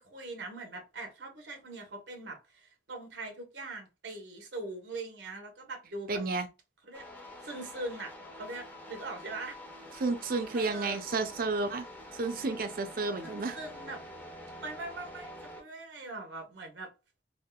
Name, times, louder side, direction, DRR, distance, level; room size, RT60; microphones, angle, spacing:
voice 1, 0.0-6.2 6.9-7.0 7.4-9.6 10.5-11.0 13.2-14.0 14.6-16.9, right 2 dB, 90° right, 1.1 m, -42 dB
voice 2, 6.1-6.5 10.0-11.8 12.1-13.6, right 3 dB, 55° right, 0.5 m, -31 dB
sound 1, 6.9-15.6, left 1 dB, 10° left, 0.5 m, -47 dB
3.5 x 2.4 x 2.2 m
head